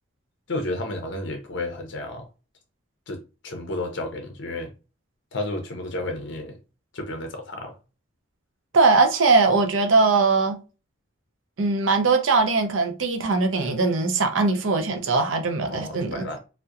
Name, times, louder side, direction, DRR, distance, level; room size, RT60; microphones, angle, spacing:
voice 1, 0.5-2.3 3.1-4.7 5.3-6.6 6.9-7.8 15.7-16.4, left 1 dB, 65° left, 0.5 m, -32 dB
voice 2, 8.7-10.6 11.6-16.2, right 3 dB, 80° right, 0.5 m, -20 dB
2.7 x 2.1 x 2.3 m
head